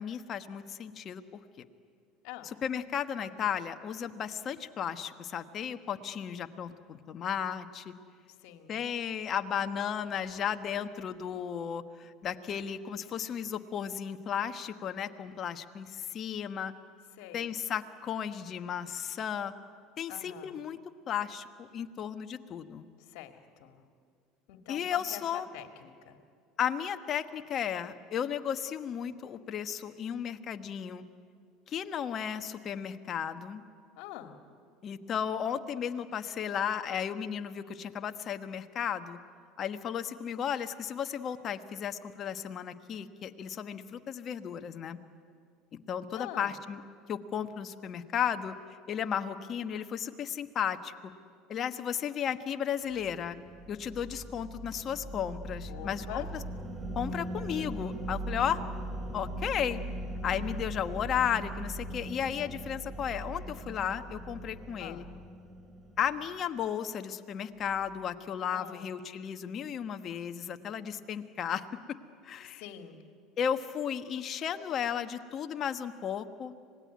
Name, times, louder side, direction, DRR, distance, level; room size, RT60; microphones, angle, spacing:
voice 1, 0.0-1.4 2.4-7.9 8.7-16.7 17.3-19.5 20.0-20.8 21.1-22.9 24.7-25.5 26.6-31.0 31.7-33.6 34.8-39.2 39.6-45.0 45.9-46.8 47.1-48.6 48.9-50.9 51.5-53.4 53.7-56.4 56.9-58.6 59.1-59.8 60.2-65.0 66.0-72.0 72.2-72.6 73.4-76.5, left 8 dB, 45° left, 8 dB, 1.3 m, -34 dB
voice 2, 8.4-8.8 17.2-17.5 20.1-20.6 23.1-23.3 23.6-23.8 24.5-26.2 34.0-34.4 46.1-46.5 55.7-56.3 64.8-65.1 68.5-68.9 72.6-73.0, left 12 dB, 70° left, 6 dB, 2.2 m, -45 dB
sound 1, 52.9-66.5, right 1 dB, 25° right, 2.5 m, -40 dB
26.0 x 19.0 x 9.5 m, 2.2 s
supercardioid pair, 95°, 0 cm